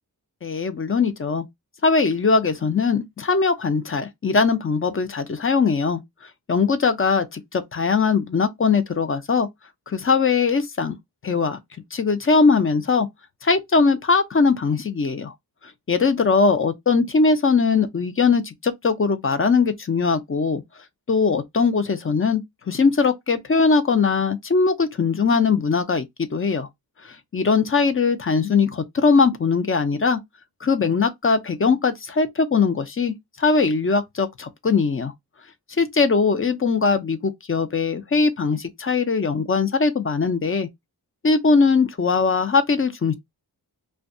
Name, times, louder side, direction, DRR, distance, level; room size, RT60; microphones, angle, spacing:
voice 1, 0.4-1.5 1.8-6.0 6.5-9.5 9.9-10.9 11.2-11.6 11.9-13.1 13.4-15.3 15.9-20.6 21.1-22.4 22.7-26.0 26.3-26.7 27.0-30.2 30.6-35.1 35.8-40.7 41.2-43.1, left 4 dB, 35° left, 0.5 m, -20 dB
2.5 x 2.2 x 2.5 m
cardioid pair, 65°, 40 cm